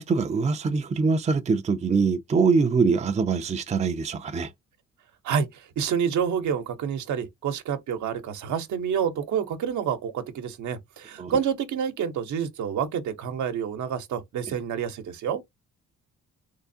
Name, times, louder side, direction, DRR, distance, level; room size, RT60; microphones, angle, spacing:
voice 1, 0.0-4.5 11.2-11.4, right 4 dB, 25° right, 0.5 m, -23 dB
voice 2, 5.2-15.4, right 7 dB, 70° right, 0.9 m, -28 dB
3.5 x 3.3 x 2.7 m
cardioid pair, 90°, 30 cm